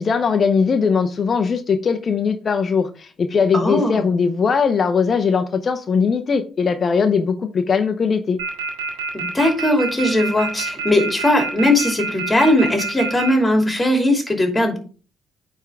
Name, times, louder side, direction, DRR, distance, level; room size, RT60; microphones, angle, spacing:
voice 1, 0.0-8.4, left 5 dB, 45° left, 0.8 m, -20 dB
voice 2, 3.5-4.1 9.1-14.8, left 1 dB, 15° left, 2.7 m, -19 dB
sound 1, 8.4-13.3, right 5 dB, 85° right, 1.7 m, -26 dB
9.1 x 3.6 x 3.4 m
hypercardioid pair, 50°, 0 cm